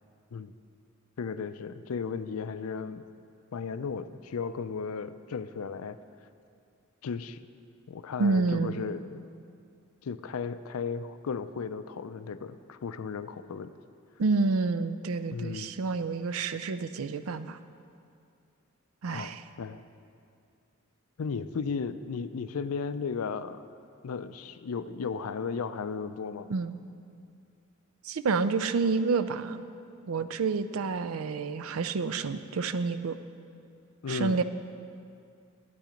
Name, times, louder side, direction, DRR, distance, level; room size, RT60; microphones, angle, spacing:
voice 1, 1.2-3.1 3.5-6.0 7.0-7.4 7.9-9.2 10.0-13.7 15.3-15.7 19.0-19.8 21.2-23.6 24.0-26.5 34.0-34.4, left 5 dB, 85° left, 12 dB, 0.5 m, -35 dB
voice 2, 8.2-8.9 14.2-17.6 19.0-19.4 26.5-26.8 28.0-29.6 30.1-33.2 34.1-34.4, right 4 dB, 70° right, 13 dB, 0.4 m, -29 dB
12.0 x 8.5 x 5.1 m, 2.5 s
head